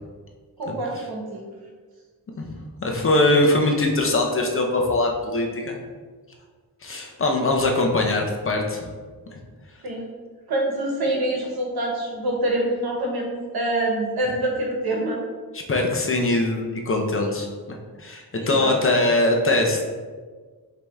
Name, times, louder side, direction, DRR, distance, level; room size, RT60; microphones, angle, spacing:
voice 1, 0.6-1.5 9.8-10.0 10.5-15.2 18.4-18.7, right 1 dB, 75° right, -1 dB, 1.2 m, -26 dB
voice 2, 2.4-5.8 6.8-8.9 15.7-19.8, left 2 dB, 35° left, 0 dB, 0.8 m, -22 dB
5.0 x 2.9 x 3.5 m, 1.5 s
cardioid pair, 80°, 37 cm